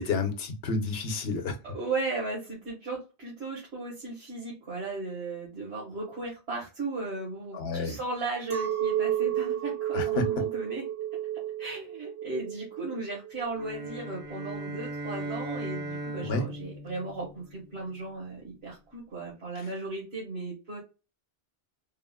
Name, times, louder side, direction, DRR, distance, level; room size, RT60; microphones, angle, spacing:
voice 1, 0.0-1.6 7.5-8.0 9.9-10.2 16.2-16.4, left 3 dB, 75° left, 0.9 m, -30 dB
voice 2, 1.7-2.4 2.7-10.8 11.6-17.3 17.5-18.4 18.6-20.8, right 3 dB, 75° right, 1.4 m, -36 dB
Chink clink, 8.5-14.0, right 11 dB, 60° right, 0.7 m, -31 dB
sound 1, 13.6-18.0, right 1 dB, 15° right, 0.4 m, -38 dB
3.6 x 2.0 x 2.2 m
omnidirectional pair, 1.1 m